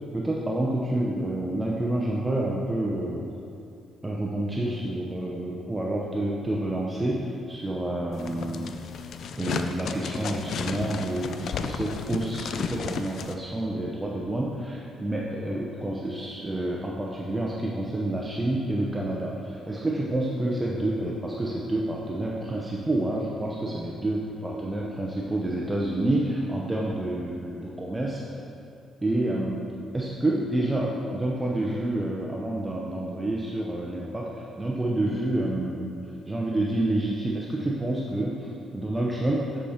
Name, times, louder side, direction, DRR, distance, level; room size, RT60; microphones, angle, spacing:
voice 1, 0.1-3.2 4.0-8.7 9.4-28.2 29.0-29.6 29.9-36.0 36.3-39.5, right 1 dB, 15° right, -3 dB, 0.7 m, -28 dB
sound 1, 8.1-13.3, left 6 dB, 65° left, 0.4 m, -33 dB
8.4 x 5.0 x 4.3 m, 2.5 s
cardioid pair, 90°, 0 cm